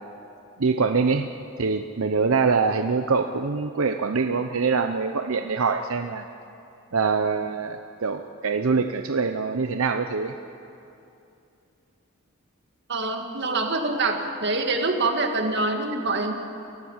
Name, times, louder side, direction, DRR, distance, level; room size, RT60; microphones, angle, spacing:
voice 1, 0.6-1.3 1.6-6.3 6.9-10.3, right 4 dB, 85° right, 7 dB, 0.7 m, -24 dB
voice 2, 12.9-16.3, right 3 dB, 55° right, 4 dB, 2.0 m, -25 dB
29.0 x 14.5 x 7.3 m, 2.7 s
head